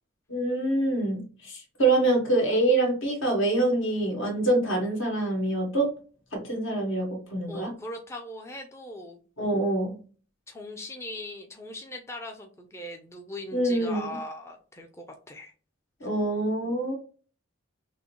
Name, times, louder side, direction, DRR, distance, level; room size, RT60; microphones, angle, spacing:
voice 1, 0.3-5.9 6.3-7.7 9.4-9.9 13.5-14.2 16.0-16.9, right 2 dB, 70° left, 1 dB, 1.6 m, -25 dB
voice 2, 7.5-9.2 10.5-15.5, left 1 dB, 15° left, 2 dB, 0.5 m, -40 dB
6.2 x 2.1 x 2.9 m, 0.37 s
head